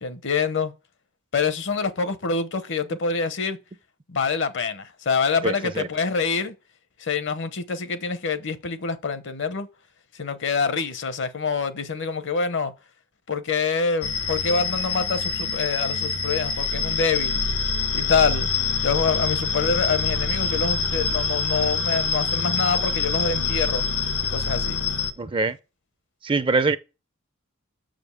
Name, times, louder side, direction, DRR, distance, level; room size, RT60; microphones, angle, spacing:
voice 1, 0.0-0.7 1.3-3.6 4.1-6.5 7.0-9.7 10.1-12.7 13.3-17.4 17.9-18.5 18.8-23.8 24.3-24.8, left 5 dB, 60° left, 0.8 m, -26 dB
voice 2, 5.4-5.9 25.2-25.6 26.2-26.8, right 3 dB, 25° right, 0.4 m, -23 dB
sound 1, 14.0-25.1, left 5 dB, 85° left, 1.3 m, -25 dB
6.7 x 5.1 x 7.0 m
head